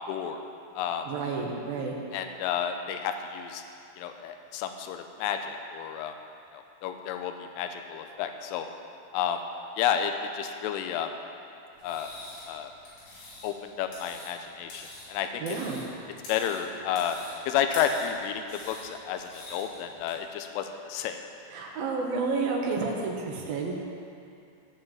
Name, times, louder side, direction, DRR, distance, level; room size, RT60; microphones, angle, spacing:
voice 1, 0.1-0.4 0.7-1.1 2.1-3.6 4.0-6.1 6.5-8.7 9.1-9.4 9.8-11.1 11.8-12.1 12.5-12.7 13.4-15.4 16.3-17.2 17.5-21.2, left 8 dB, 85° left, 6 dB, 3.2 m, -31 dB
voice 2, 1.1-2.0 15.4-15.8 21.5-23.7, right 4 dB, 70° right, -1 dB, 2.3 m, -30 dB
sound 1, 11.7-20.1, left 2 dB, 70° left, 5.7 m, -46 dB
16.0 x 5.7 x 7.4 m, 2.6 s
omnidirectional pair, 5.6 m